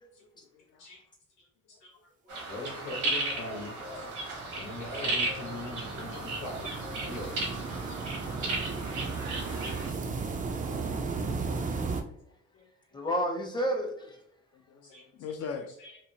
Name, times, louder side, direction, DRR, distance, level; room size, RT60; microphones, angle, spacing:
voice 1, 1.4-4.1 4.6-7.6 14.8-15.0 15.4-15.5 15.8-16.0, left 2 dB, 80° left, 1.0 m, -43 dB
sound 1, 2.3-9.9, right 2 dB, 75° right, 1.0 m, -35 dB
voice 2, 3.2-4.0 4.9-5.2 12.9-14.2, equal, 15° left, 0.7 m, -33 dB
sound 2, 3.2-12.0, right 4 dB, 25° right, 0.4 m, -36 dB
voice 3, 12.5-13.0 14.5-15.7, left 5 dB, 55° left, 0.5 m, -42 dB
3.0 x 2.0 x 2.7 m
cardioid pair, 90°, 30 cm